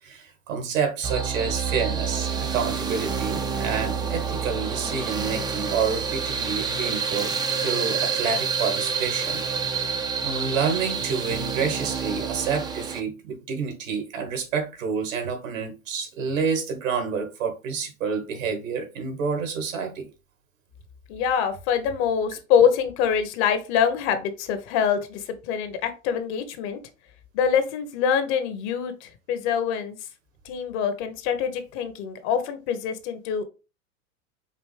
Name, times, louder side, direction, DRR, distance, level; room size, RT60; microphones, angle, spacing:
voice 1, 0.0-9.9 10.2-20.1, right 6 dB, 75° right, 1.6 m, -29 dB
sound 1, 1.0-13.0, right 6 dB, 10° right, 0.4 m, -28 dB
voice 2, 21.1-26.8 27.3-30.0 30.4-33.5, left 7 dB, 55° left, 1.0 m, -25 dB
5.1 x 2.6 x 3.3 m
hypercardioid pair, 100°, 40 cm